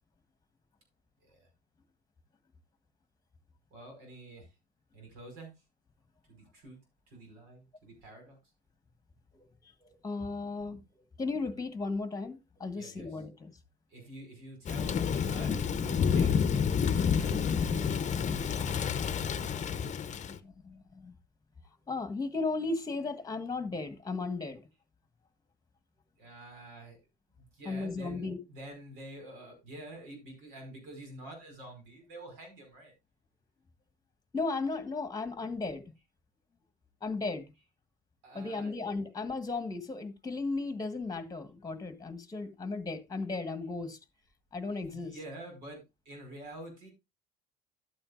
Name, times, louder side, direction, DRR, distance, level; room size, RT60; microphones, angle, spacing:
voice 1, 3.7-4.5 4.9-5.5 6.3-6.8 7.1-8.4 12.7-13.2 13.9-17.9 18.2-18.7 26.2-27.0 27.4-32.9 38.2-38.9 44.7-46.9, right 1 dB, 75° right, 5.1 m, -48 dB
voice 2, 9.8-10.8 11.2-13.5 20.3-21.1 21.9-24.6 27.6-28.4 34.3-35.8 37.0-37.5 38.3-44.0 44.5-45.1, left 3 dB, 15° left, 1.5 m, -35 dB
Thunder / Rain, 14.7-20.4, left 7 dB, 35° left, 0.8 m, -29 dB
12.0 x 8.7 x 2.5 m
hypercardioid pair, 70°, 21 cm